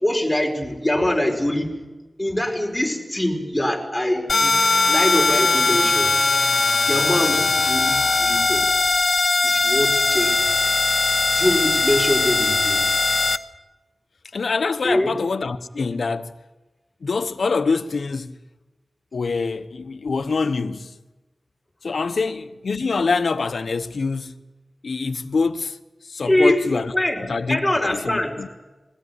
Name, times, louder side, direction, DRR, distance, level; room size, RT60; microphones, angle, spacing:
voice 1, 0.0-1.7 2.2-4.6 4.9-6.1 6.9-8.6 9.4-10.7 11.3-12.8 14.8-15.1 26.2-26.6 26.9-27.2 27.5-28.4, left 1 dB, 5° left, 5.0 m, -23 dB
sound 1, 4.3-13.4, left 3 dB, 55° left, 0.8 m, -19 dB
voice 2, 14.3-16.3 17.0-18.4 19.1-20.9 21.8-24.4 24.8-25.8 26.0-26.9 27.3-28.5, left 4 dB, 80° left, 1.0 m, -25 dB
22.0 x 16.5 x 9.6 m
wide cardioid pair, 70°, 0 cm